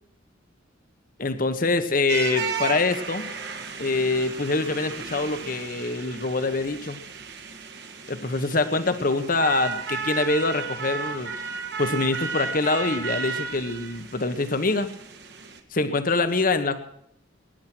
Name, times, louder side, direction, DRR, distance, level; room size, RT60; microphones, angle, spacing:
voice 1, 1.2-3.3 3.8-7.0 8.1-11.3 11.8-14.9 15.7-16.8, left 3 dB, 45° left, 9 dB, 1.2 m, -25 dB
sound 1, 2.1-15.6, right 5 dB, 60° right, 2.1 m, -34 dB
21.0 x 10.5 x 6.2 m, 0.70 s
head